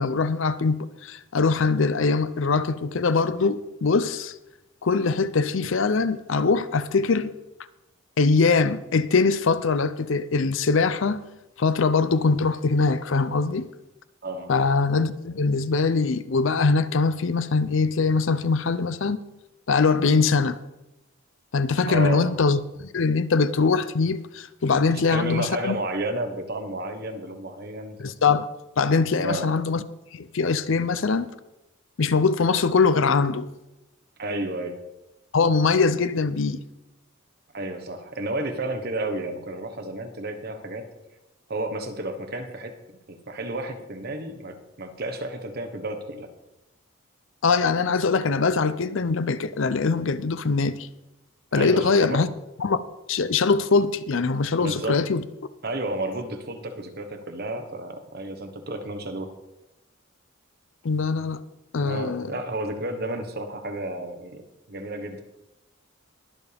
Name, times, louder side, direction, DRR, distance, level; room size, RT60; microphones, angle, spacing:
voice 1, 0.0-4.3 4.8-7.3 8.2-11.2 11.6-13.7 14.5-19.2 19.7-20.6 21.5-25.8 28.0-28.5 28.8-29.8 30.1-31.3 32.0-33.5 35.3-36.6 47.4-50.9 51.5-52.3 52.6-52.8 53.1-55.2 60.8-61.4 61.7-62.3, left 4 dB, 65° left, 0.6 m, -22 dB
voice 2, 14.2-14.5 21.9-22.3 25.1-28.0 29.2-29.5 34.2-34.8 37.5-40.9 41.5-42.8 43.1-46.3 51.5-52.2 54.6-55.0 55.6-59.3 61.8-64.4 64.7-65.2, right 1 dB, 45° right, 1.3 m, -31 dB
21.5 x 7.2 x 3.5 m
head